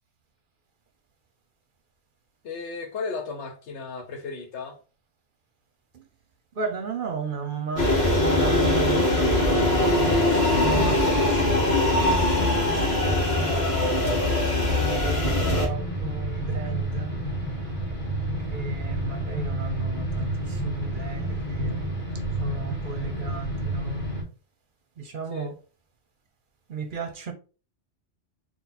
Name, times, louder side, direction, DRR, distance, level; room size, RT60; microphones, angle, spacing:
voice 1, 2.4-4.8 25.3-25.5, left 4 dB, 80° left, 1.2 m, -34 dB
voice 2, 6.5-10.2 10.6-17.2 18.5-21.9 22.4-24.0 25.0-25.6 26.7-27.3, right 5 dB, 55° right, 0.8 m, -35 dB
sound 1, 7.8-15.7, left 1 dB, 65° left, 1.4 m, -22 dB
sound 2, 15.2-24.2, right 1 dB, 30° left, 1.7 m, -30 dB
4.1 x 2.4 x 4.1 m
omnidirectional pair, 1.2 m